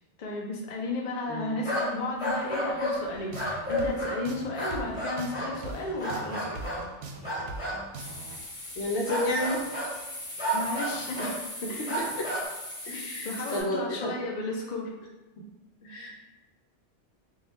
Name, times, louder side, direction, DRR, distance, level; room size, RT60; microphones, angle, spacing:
voice 1, 0.2-6.6 10.5-11.2 11.7-12.0 12.9-14.9, left 2 dB, 45° left, -2 dB, 0.6 m, -34 dB
voice 2, 1.3-1.6 8.8-9.7 11.2-11.3 11.6-12.3 12.8-14.2 15.4-15.5 15.8-16.1, left 1 dB, 75° left, -1 dB, 1.0 m, -32 dB
sound 1, 1.6-1.9 2.2-3.0 3.3-4.2 4.5-5.6 6.0-6.9 7.2-7.8 9.1-10.0 10.4-11.4 11.9-12.4, equal, 25° left, 1.2 m, -31 dB
sound 2, 3.2-8.4, right 3 dB, 65° right, 0.8 m, -41 dB
sound 3, 8.0-13.6, left 1 dB, 5° left, 1.4 m, -40 dB
3.6 x 2.3 x 4.0 m, 1.0 s
omnidirectional pair, 1.2 m